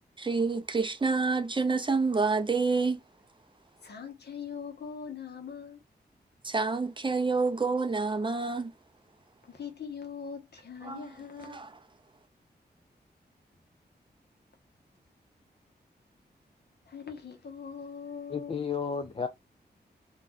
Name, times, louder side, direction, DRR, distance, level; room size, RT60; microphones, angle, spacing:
voice 1, 0.2-3.0 6.4-8.7 10.8-11.1 11.4-11.7, right 4 dB, 30° right, 0.5 m, -28 dB
voice 2, 3.8-5.8 9.4-11.6 16.9-19.1, left 6 dB, 70° left, 1.0 m, -42 dB
voice 3, 18.3-19.3, left 6 dB, 35° left, 0.4 m, -32 dB
2.6 x 2.3 x 4.0 m
wide cardioid pair, 85°, 18 cm